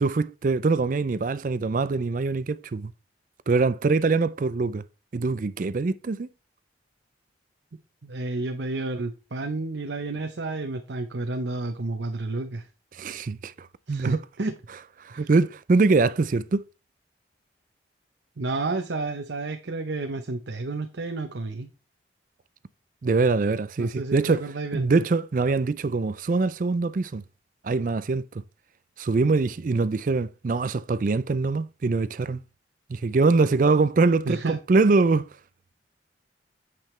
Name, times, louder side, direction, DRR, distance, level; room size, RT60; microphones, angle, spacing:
voice 1, 0.0-2.9 3.5-4.8 5.1-6.3 12.9-14.2 15.0-16.6 23.0-27.2 27.6-28.3 29.0-32.4 32.9-35.3, right 3 dB, 45° right, 0.4 m, -23 dB
voice 2, 8.0-12.7 13.9-14.5 15.1-15.3 18.4-21.7 23.8-24.9 34.2-34.6, right 2 dB, 75° right, 0.8 m, -31 dB
9.0 x 7.8 x 3.2 m
head